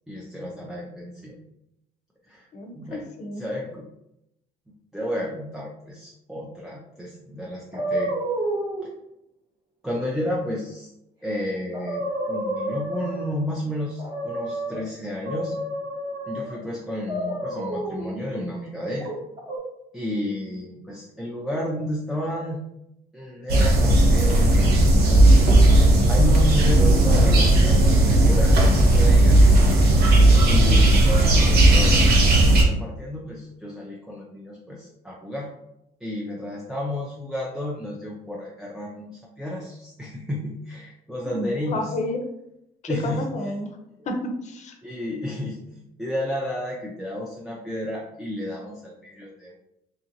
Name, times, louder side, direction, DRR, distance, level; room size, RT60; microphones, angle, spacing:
voice 1, 0.1-1.4 2.3-2.5 2.7-3.1 3.3-3.8 4.7-8.1 9.8-10.9 11.2-15.6 16.3-19.1 19.9-22.6 23.1-25.3 25.7-29.5 30.2-35.5 36.0-41.9 42.9-43.3 44.8-49.6, left 1 dB, ahead, -4 dB, 0.4 m, -32 dB
voice 2, 2.5-3.5 41.2-42.2 42.8-43.7 44.1-44.7, left 2 dB, 45° left, 4 dB, 0.6 m, -31 dB
sound 1, 7.7-8.8 11.3-11.4 11.7-13.4 14.0-14.8 15.2-16.6 17.1-18.1 19.0-19.6, right 1 dB, 25° right, 0.9 m, -29 dB
sound 2, 23.5-32.6, right 1 dB, 70° right, 0.7 m, -16 dB
2.9 x 2.5 x 2.7 m, 0.84 s
cardioid pair, 110°, 17 cm